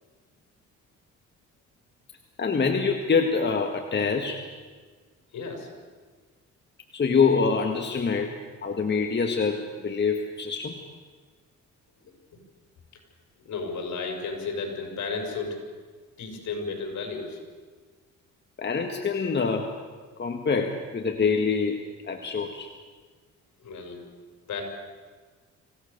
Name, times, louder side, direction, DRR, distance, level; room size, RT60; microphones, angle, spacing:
voice 1, 2.4-4.4 6.9-8.4 8.6-10.8 18.6-19.7 20.2-21.8 22.1-22.7, left 5 dB, 35° left, 4 dB, 1.8 m, -25 dB
voice 2, 5.3-5.7 12.0-12.1 13.4-15.6 16.2-17.4 23.6-24.0 24.5-24.6, left 4 dB, 65° left, 2 dB, 6.1 m, -33 dB
25.5 x 17.0 x 6.8 m, 1.5 s
cardioid pair, 90°, 30 cm